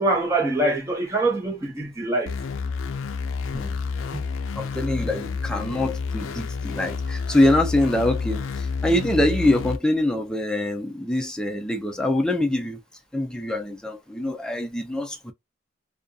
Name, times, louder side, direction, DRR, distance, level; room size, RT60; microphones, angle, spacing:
voice 1, 0.0-2.3, right 2 dB, 15° right, 0.9 m, -24 dB
sound 1, 2.3-9.8, left 5 dB, 80° left, 0.4 m, -29 dB
voice 2, 4.6-12.8 13.1-15.3, left 1 dB, 5° left, 0.4 m, -24 dB
2.5 x 2.3 x 2.3 m
head